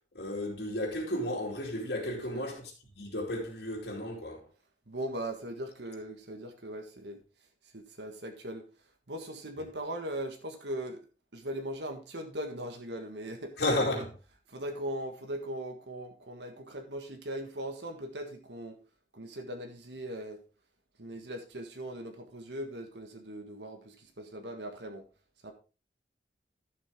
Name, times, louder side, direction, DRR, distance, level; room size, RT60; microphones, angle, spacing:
voice 1, 0.1-4.5 13.6-14.1, left 1 dB, 70° left, 2.7 m, -33 dB
voice 2, 2.1-2.5 4.9-7.2 7.7-8.6 9.1-11.0 11.3-13.5 14.5-18.8 19.1-20.4 21.0-25.0 25.4-25.5, right 1 dB, 75° right, 1.7 m, -39 dB
11.5 x 7.5 x 3.7 m
head